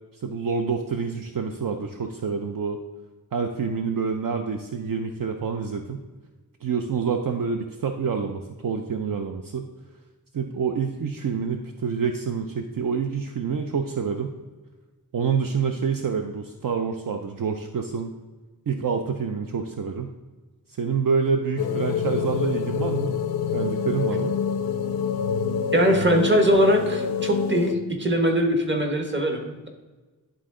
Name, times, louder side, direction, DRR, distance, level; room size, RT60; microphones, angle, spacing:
voice 1, 0.1-2.8 3.3-6.0 6.6-9.7 10.3-14.3 15.1-18.1 18.7-20.1 20.8-23.1 23.5-24.3, right 5 dB, 60° right, 5 dB, 0.5 m, -27 dB
sound 1, 21.6-27.7, left 6 dB, 75° left, 0.5 m, -26 dB
voice 2, 25.7-29.7, equal, 30° right, 4 dB, 1.1 m, -21 dB
11.0 x 3.8 x 3.7 m, 1.2 s
wide cardioid pair, 85°, 37 cm